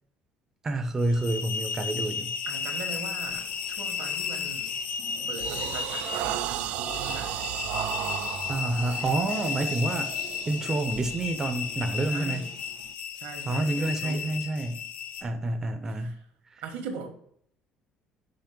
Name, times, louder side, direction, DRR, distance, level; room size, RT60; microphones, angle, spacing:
voice 1, 0.6-2.3 5.0-5.2 8.5-10.1 10.5-12.4 13.5-14.8 15.2-16.2 16.5-16.6, right 2 dB, 20° right, 6 dB, 0.5 m, -28 dB
sound 1, 1.0-15.2, left 7 dB, 60° left, 0.9 m, -34 dB
voice 2, 2.5-4.7 5.3-7.4 12.1-12.5 13.1-14.3 15.9-16.2 16.6-17.1, right 5 dB, 85° right, 4 dB, 1.8 m, -40 dB
sound 2, 3.3-3.5 4.0-4.3 4.8-12.9, right 11 dB, 65° right, 0.4 m, -35 dB
5.7 x 5.3 x 5.1 m, 0.67 s
cardioid pair, 165°, 3 cm